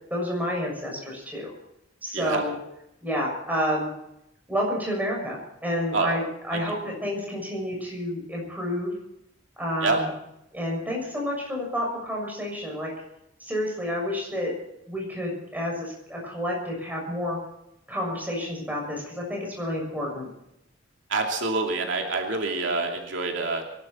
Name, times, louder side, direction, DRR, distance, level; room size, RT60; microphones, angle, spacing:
voice 1, 0.1-1.5 2.0-2.5 3.0-3.9 4.5-8.9 9.6-10.1 10.5-12.9 13.4-14.5 14.9-17.4 17.9-20.3, equal, 10° right, -1 dB, 6.7 m, -29 dB
voice 2, 21.1-23.6, right 3 dB, 90° right, 2 dB, 2.7 m, -26 dB
24.0 x 12.0 x 4.4 m, 0.82 s
head